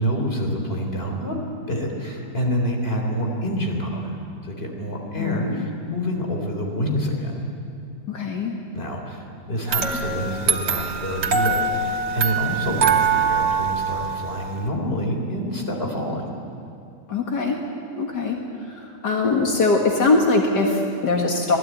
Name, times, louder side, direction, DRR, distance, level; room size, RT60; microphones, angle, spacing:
voice 1, 0.0-1.4 1.7-4.2 4.4-7.5 8.7-16.3, equal, 35° left, 2 dB, 3.9 m, -27 dB
voice 2, 5.2-5.7 8.1-8.6 17.1-17.6 18.0-21.6, left 3 dB, 75° left, 1 dB, 2.3 m, -22 dB
sound 1, 9.7-14.7, right 5 dB, 75° right, 2.0 m, -23 dB
25.5 x 19.0 x 9.3 m, 2.6 s
omnidirectional pair, 1.8 m